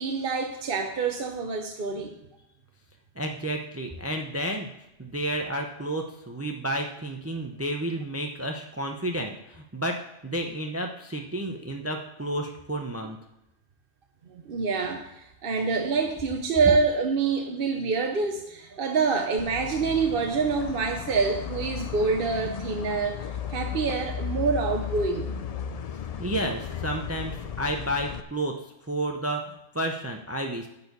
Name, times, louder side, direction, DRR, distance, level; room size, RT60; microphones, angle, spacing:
voice 1, 0.0-2.1 14.3-23.2 23.5-25.3, right 4 dB, 55° right, 3 dB, 0.9 m, -26 dB
voice 2, 3.2-4.7 5.0-10.0 10.2-13.2 26.2-28.5 28.9-30.7, right 1 dB, 15° right, 3 dB, 0.6 m, -31 dB
sound 1, 19.4-28.2, left 8 dB, 50° left, 0.4 m, -35 dB
10.5 x 4.5 x 8.0 m, 0.88 s
omnidirectional pair, 1.2 m